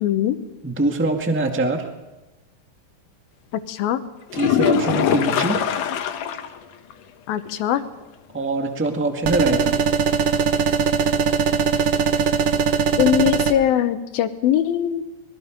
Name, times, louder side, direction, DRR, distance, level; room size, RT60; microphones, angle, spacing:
voice 1, 0.0-0.4 3.7-4.0 7.3-7.8 13.0-15.1, left 11 dB, 85° left, 10 dB, 2.9 m, -21 dB
voice 2, 0.6-1.8 4.3-5.6 8.3-9.7, right 2 dB, 10° right, 3 dB, 0.8 m, -23 dB
sound 1, 4.3-6.6 6.9-7.0 7.5-7.6 11.3-11.4, left 8 dB, 70° left, 2.5 m, -22 dB
sound 2, 9.3-13.5, right 6 dB, 60° right, 1.6 m, -20 dB
25.0 x 22.0 x 5.2 m, 1.1 s
omnidirectional pair, 4.1 m